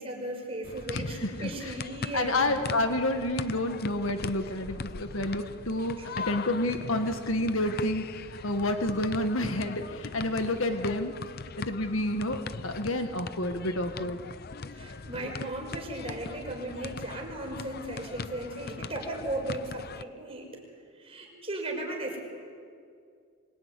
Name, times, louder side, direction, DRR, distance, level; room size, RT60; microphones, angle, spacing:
voice 1, 0.0-2.6 6.0-6.1 14.7-20.6 21.0-22.2, right 1 dB, 30° right, 0 dB, 5.9 m, -36 dB
sound 1, 0.6-20.0, left 4 dB, 50° left, 0.7 m, -40 dB
voice 2, 0.9-1.5 2.1-8.1 8.3-11.1 11.6-14.2, left 1 dB, 70° left, 6 dB, 1.8 m, -29 dB
25.0 x 24.5 x 9.6 m, 2.3 s
head